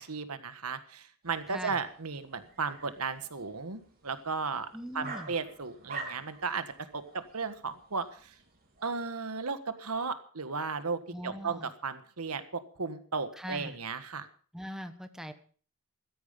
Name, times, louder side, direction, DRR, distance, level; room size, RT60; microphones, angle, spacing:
voice 1, 0.0-4.7 4.9-6.6 6.9-8.3 8.8-14.3, right 4 dB, 80° right, 10 dB, 1.5 m, -35 dB
sound 1, 1.2-9.1, right 3 dB, 45° right, 3.8 m, -48 dB
voice 2, 1.5-1.8 4.7-5.3 11.1-11.7 13.3-13.8 14.5-15.3, equal, ahead, 8 dB, 1.1 m, -41 dB
15.5 x 13.0 x 5.2 m, 0.43 s
head